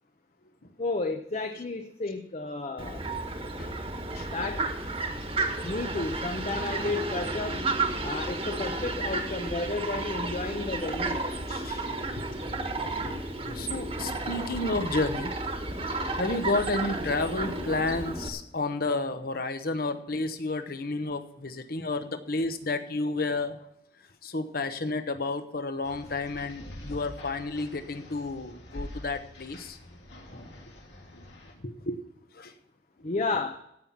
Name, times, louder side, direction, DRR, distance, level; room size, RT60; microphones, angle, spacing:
voice 1, 0.8-3.0 4.3-4.7 5.6-7.7 8.0-11.3 33.0-33.6, left 3 dB, 40° left, 0.7 m, -32 dB
Fowl, 2.8-18.3, right 2 dB, 30° right, 1.4 m, -32 dB
voice 2, 11.5-11.8 12.6-12.9 13.5-15.3 16.2-23.6 24.2-29.8 31.6-32.0 32.3-32.5, left 2 dB, 55° left, 1.0 m, -31 dB
sound 1, 25.8-31.5, left 1 dB, 80° left, 3.0 m, -45 dB
16.0 x 5.8 x 7.1 m
head